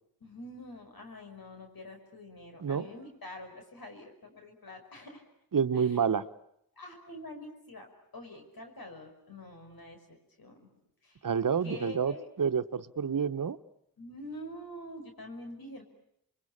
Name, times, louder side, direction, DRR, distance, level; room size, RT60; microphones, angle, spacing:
voice 1, 0.2-5.2 5.7-6.0 6.8-7.9 8.1-10.0 10.4-11.3 11.6-12.3 14.0-15.8, left 1 dB, 85° left, 4 dB, 5.8 m, -46 dB
voice 2, 5.5-6.2 11.2-13.6, right 7 dB, 65° right, 11 dB, 1.1 m, -28 dB
29.5 x 23.0 x 8.7 m, 0.74 s
wide cardioid pair, 60°, 35 cm